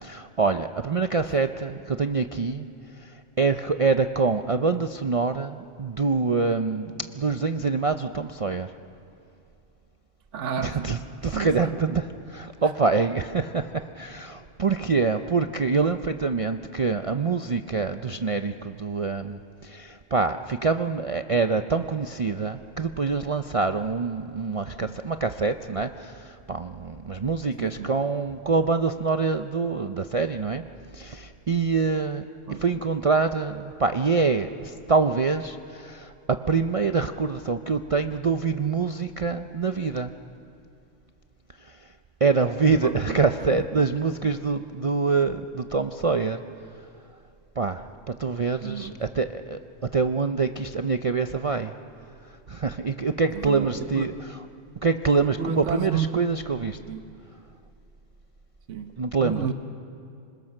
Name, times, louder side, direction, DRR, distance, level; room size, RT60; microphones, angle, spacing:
voice 1, 0.0-2.7 3.0-8.7 10.6-12.0 12.3-30.6 30.9-32.2 32.6-40.1 41.7-41.8 42.2-46.4 47.6-49.6 49.9-51.7 52.5-54.1 54.8-56.8 59.0-59.5, right 4 dB, 45° right, 8 dB, 0.4 m, -25 dB
voice 2, 10.3-11.8 12.6-12.7 24.8-24.9 27.6-27.9 32.5-32.6 42.7-43.8 44.2-44.3 48.6-49.0 53.3-54.1 55.4-56.2 56.9-57.0 58.7-58.9 59.2-59.5, right 7 dB, 70° right, 8 dB, 1.3 m, -32 dB
26.5 x 20.5 x 6.5 m, 2.7 s
omnidirectional pair, 1.3 m